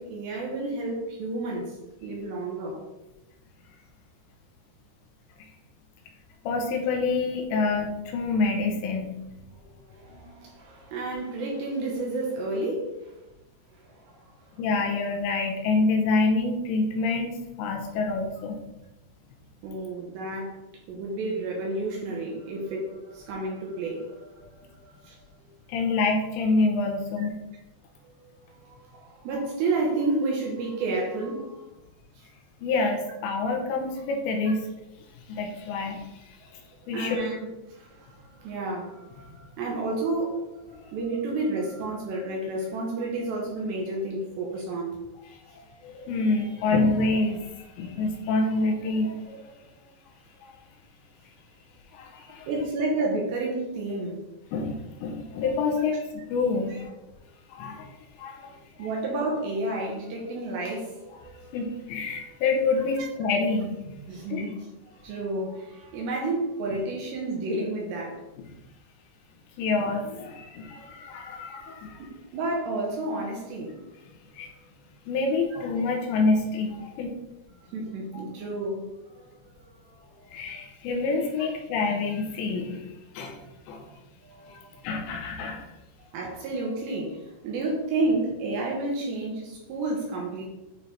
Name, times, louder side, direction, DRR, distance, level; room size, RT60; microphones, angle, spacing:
voice 1, 0.0-2.8 9.5-13.1 13.8-14.5 19.6-20.6 20.9-25.5 27.2-27.3 28.0-31.7 36.4-36.5 36.9-45.0 47.8-47.9 52.5-54.2 56.7-56.8 58.8-61.8 63.0-63.1 64.1-64.7 65.0-68.2 71.8-73.8 75.5-75.6 77.6-78.9 79.2-79.3 79.8-80.6 83.4-83.5 83.8-83.9 84.2-84.8 86.1-90.5, right 2 dB, 75° right, -1 dB, 3.0 m, -31 dB
voice 2, 6.4-9.2 10.1-10.3 14.6-18.6 25.7-27.3 32.6-34.6 35.3-36.4 36.9-37.2 40.8-40.9 45.3-49.4 50.4-50.5 51.9-52.5 54.5-56.9 57.5-58.9 61.5-64.0 64.3-64.4 69.6-72.0 74.3-74.5 75.1-77.1 80.3-82.9 83.1-83.4 83.7-83.9 84.5-85.7, left 3 dB, 85° left, 2 dB, 3.0 m, -27 dB
8.9 x 3.2 x 4.1 m, 0.97 s
omnidirectional pair, 5.3 m